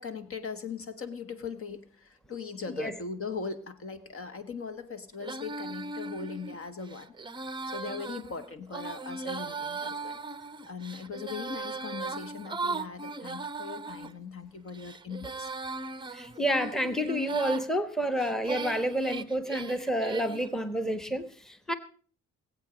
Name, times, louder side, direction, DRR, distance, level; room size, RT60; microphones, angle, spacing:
voice 1, 0.0-10.2 10.7-15.5, left 5 dB, 45° left, 11 dB, 1.4 m, -40 dB
Female singing, 5.2-14.1 14.7-17.7 18.2-20.5, right 3 dB, 15° right, 0.7 m, -38 dB
voice 2, 16.1-21.7, equal, ahead, 10 dB, 1.2 m, -29 dB
19.5 x 8.3 x 5.0 m, 0.43 s
cardioid pair, 90°, 30 cm